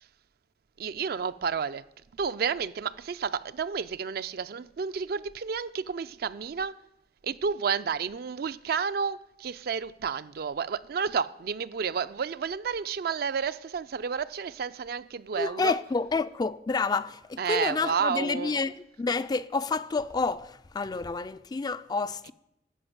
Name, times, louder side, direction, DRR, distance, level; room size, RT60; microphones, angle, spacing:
voice 1, 0.8-1.8 2.2-6.7 7.2-15.7 17.4-18.5, right 6 dB, 60° right, 0.4 m, -31 dB
voice 2, 15.4-22.3, left 4 dB, 25° left, 0.3 m, -29 dB
12.0 x 5.1 x 7.9 m
head